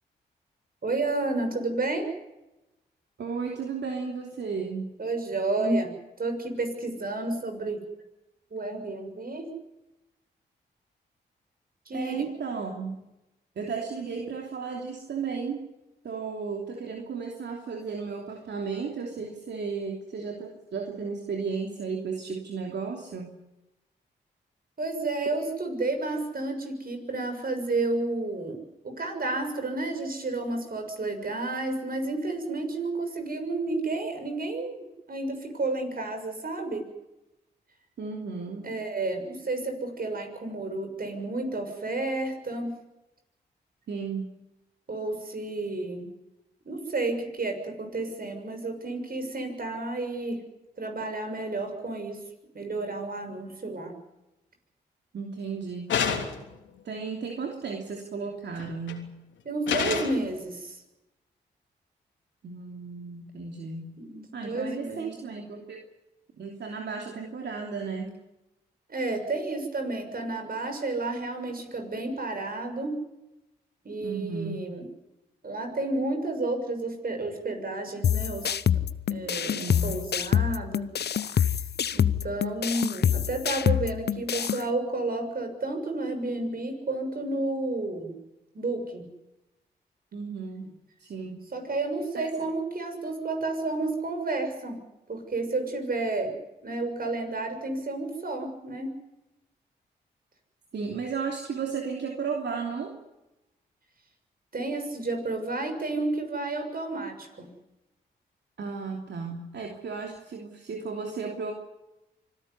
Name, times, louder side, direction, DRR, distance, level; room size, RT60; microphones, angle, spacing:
voice 1, 0.8-2.1 5.0-5.9 6.2-7.8 8.5-9.5 11.9-12.1 24.8-36.9 38.6-42.7 44.9-46.1 46.6-50.4 50.8-52.2 52.5-53.9 59.4-60.8 64.0-65.1 68.9-73.0 73.8-74.9 75.4-78.5 79.1-80.9 81.3-81.6 81.9-88.1 88.5-89.0 91.5-94.8 95.1-96.4 96.6-98.9 104.5-107.5, right 2 dB, 50° right, 5 dB, 6.7 m, -31 dB
voice 2, 3.2-4.9 11.9-13.0 13.5-15.6 16.0-23.3 38.0-38.7 43.9-44.3 55.1-55.9 56.8-59.1 62.4-64.0 64.3-65.8 66.4-68.1 74.0-74.7 79.5-79.9 90.1-91.4 92.1-92.5 100.7-103.0 108.6-111.5, right 5 dB, 65° right, 2 dB, 3.0 m, -34 dB
sound 1, 55.9-56.5 58.6-59.0 59.7-60.2, left 7 dB, 80° left, 3.3 m, -28 dB
sound 2, 78.0-84.6, left 9 dB, 60° left, 0.8 m, -26 dB
25.5 x 14.0 x 9.8 m, 0.96 s
supercardioid pair, 45°, 19 cm